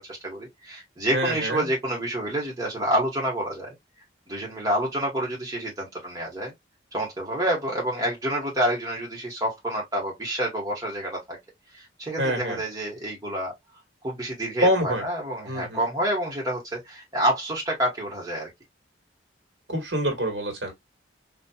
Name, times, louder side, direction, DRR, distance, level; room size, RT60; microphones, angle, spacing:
voice 1, 0.0-3.8 4.3-6.5 6.9-11.4 11.7-13.5 14.0-18.5, right 1 dB, 20° right, 1.1 m, -28 dB
voice 2, 1.1-1.6 12.2-12.6 14.6-15.0 15.5-15.8 19.7-20.7, equal, 70° right, 1.5 m, -25 dB
4.1 x 2.4 x 2.2 m
head